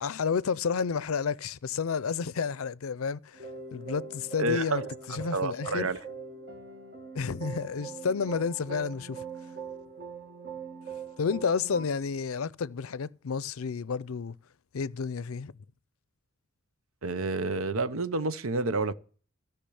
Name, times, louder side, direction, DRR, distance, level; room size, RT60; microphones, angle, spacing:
voice 1, 0.0-4.8 5.1-5.9 7.1-9.2 11.2-14.4 14.7-15.5, left 5 dB, 90° left, 0.5 m, -31 dB
sound 1, 3.3-11.9, right 5 dB, 50° right, 1.9 m, -42 dB
voice 2, 4.4-6.0 17.0-18.9, right 2 dB, 85° right, 0.8 m, -29 dB
13.5 x 5.9 x 8.5 m
head